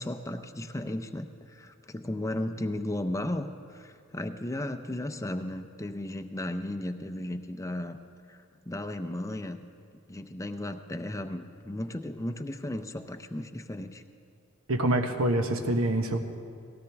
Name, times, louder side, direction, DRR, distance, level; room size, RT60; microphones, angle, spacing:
voice 1, 0.0-8.0 8.3-9.6 10.1-14.0, left 1 dB, 15° left, 7 dB, 0.5 m, -35 dB
voice 2, 14.7-16.2, right 1 dB, 70° right, 6 dB, 1.1 m, -26 dB
19.0 x 16.5 x 3.5 m, 2.3 s
head